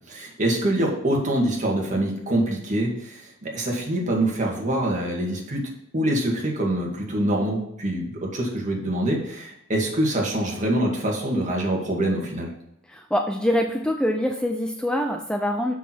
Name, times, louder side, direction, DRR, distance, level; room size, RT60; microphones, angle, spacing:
voice 1, 0.1-12.5, right 1 dB, 40° right, -1 dB, 2.0 m, -25 dB
voice 2, 12.9-15.7, equal, 5° left, 3 dB, 0.5 m, -24 dB
7.1 x 6.2 x 4.6 m, 0.79 s
head